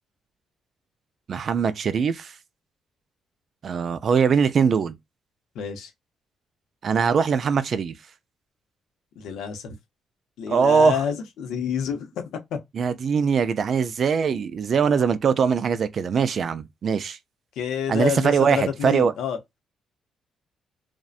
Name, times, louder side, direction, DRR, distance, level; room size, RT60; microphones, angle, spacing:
voice 1, 1.3-2.3 3.6-5.0 6.8-7.9 10.5-11.0 12.7-17.2 17.9-19.1, right 6 dB, 55° right, 0.3 m, -22 dB
voice 2, 5.5-5.9 9.2-9.8 10.4-12.6 17.6-19.4, left 7 dB, 85° left, 0.6 m, -28 dB
2.5 x 2.1 x 2.3 m
cardioid pair, 90°, 0 cm